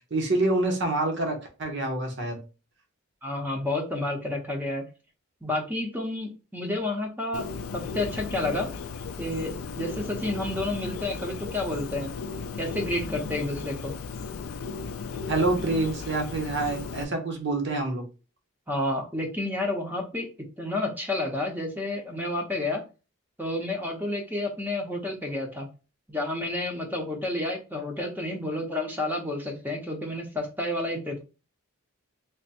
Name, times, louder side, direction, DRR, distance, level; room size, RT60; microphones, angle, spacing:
voice 1, 0.1-2.4 15.3-18.0, right 2 dB, 55° right, 3 dB, 0.8 m, -27 dB
voice 2, 3.2-4.8 5.4-7.5 7.7-8.7 9.2-12.1 12.6-13.9 18.7-20.3 20.6-22.8 23.4-25.7 26.1-31.2, left 2 dB, 10° right, 1 dB, 0.7 m, -30 dB
Bird, 7.3-17.0, left 5 dB, 85° left, 0.4 m, -36 dB
3.4 x 2.1 x 4.1 m, 0.32 s
head